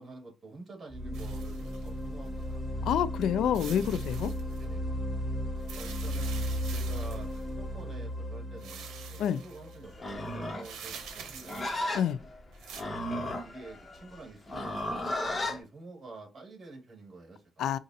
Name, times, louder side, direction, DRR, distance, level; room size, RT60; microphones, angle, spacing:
voice 1, 0.0-2.6 4.5-4.9 5.7-11.7 13.4-17.7, right 3 dB, 40° right, 2.4 m, -48 dB
sound 1, 0.9-10.7, equal, 10° left, 0.9 m, -35 dB
sound 2, 1.1-2.4 3.5-4.7 5.6-7.5 8.6-9.8 10.6-12.1 12.5-12.8, right 7 dB, 80° right, 0.8 m, -46 dB
voice 2, 2.8-4.3 9.2-9.4 11.9-12.2 17.6-17.8, left 9 dB, 75° left, 0.3 m, -28 dB
Livestock farm animals working animals, 9.9-15.6, left 1 dB, 25° left, 1.2 m, -35 dB
5.2 x 2.5 x 2.7 m
cardioid pair, 90°, 0 cm